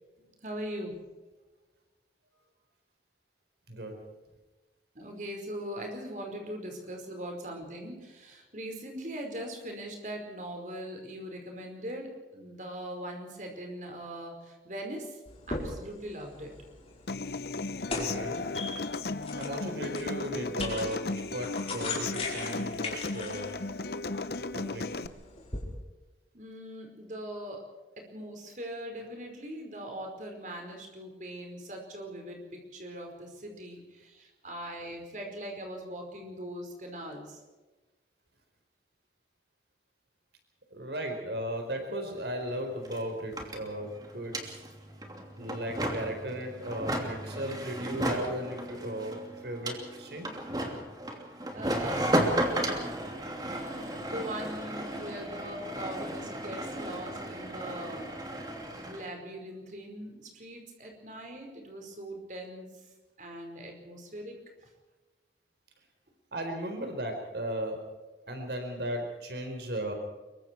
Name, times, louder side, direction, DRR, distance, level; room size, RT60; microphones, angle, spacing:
voice 1, 0.2-1.1 4.9-15.2 15.5-16.5 26.3-27.7 28.0-37.4 51.5-52.3 52.8-53.0 53.4-58.1 58.8-62.8 63.2-64.3, equal, 45° right, 3 dB, 4.9 m, -41 dB
sound 1, 15.3-25.6, left 3 dB, 35° left, 5.0 m, -40 dB
Human voice / Acoustic guitar, 17.1-25.1, left 3 dB, 60° left, 0.8 m, -35 dB
voice 2, 17.9-18.5 19.3-23.5 24.5-25.1 40.7-44.6 45.4-50.3 66.3-67.9 68.3-69.9, right 1 dB, 70° right, 4 dB, 4.4 m, -36 dB
sound 2, 42.2-42.3 42.5-59.1, right 1 dB, 20° right, 2.8 m, -34 dB
24.5 x 23.0 x 4.7 m, 1.2 s
head